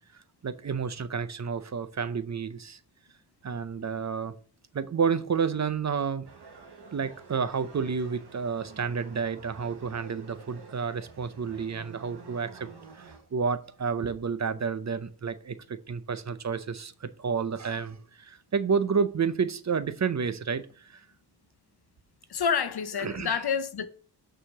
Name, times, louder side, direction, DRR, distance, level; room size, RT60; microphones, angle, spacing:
voice 1, 0.4-2.8 3.4-4.3 4.7-6.3 6.9-12.7 12.9-21.0 23.0-23.4, right 6 dB, 45° right, 0.6 m, -30 dB
sound 1, 6.2-13.2, right 4 dB, 70° right, 1.7 m, -49 dB
voice 2, 22.3-23.9, left 7 dB, 65° left, 0.9 m, -28 dB
6.2 x 4.8 x 6.5 m
wide cardioid pair, 85°, 41 cm